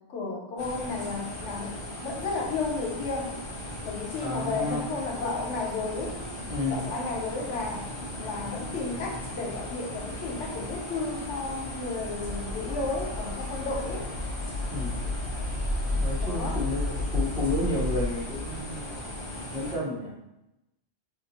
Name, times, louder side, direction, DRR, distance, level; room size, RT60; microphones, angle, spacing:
voice 1, 0.1-1.7 2.0-3.4 3.8-6.2 6.7-7.9 8.2-14.1 16.2-16.6, left 3 dB, 90° left, 0 dB, 1.0 m, -33 dB
sound 1, 0.6-19.7, left 1 dB, 35° left, 0.6 m, -38 dB
voice 2, 4.2-4.9 6.4-6.9 14.7-15.1 15.9-19.0 19.5-20.1, left 1 dB, 5° right, -7 dB, 0.8 m, -31 dB
sound 2, 12.2-18.1, left 2 dB, 65° right, 1.1 m, -31 dB
2.7 x 2.2 x 4.0 m, 0.92 s
omnidirectional pair, 1.2 m